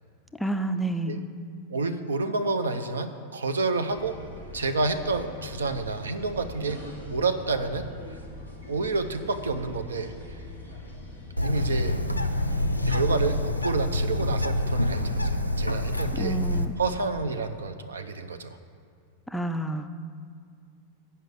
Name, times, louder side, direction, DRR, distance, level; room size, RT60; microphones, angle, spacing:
voice 1, 0.4-1.2 16.1-16.7 19.3-19.9, right 2 dB, 5° left, 7 dB, 0.4 m, -29 dB
voice 2, 1.7-4.2 4.5-7.9 8.7-10.4 11.4-12.0 12.9-16.4 16.8-18.6, right 3 dB, 70° right, 9 dB, 0.5 m, -29 dB
sound 1, 3.9-13.3, left 1 dB, 90° right, 1.4 m, -42 dB
Bird, 11.4-16.7, left 1 dB, 90° left, 0.5 m, -26 dB
7.8 x 5.6 x 7.7 m, 2.2 s
figure-of-eight pair, 90°, 0 cm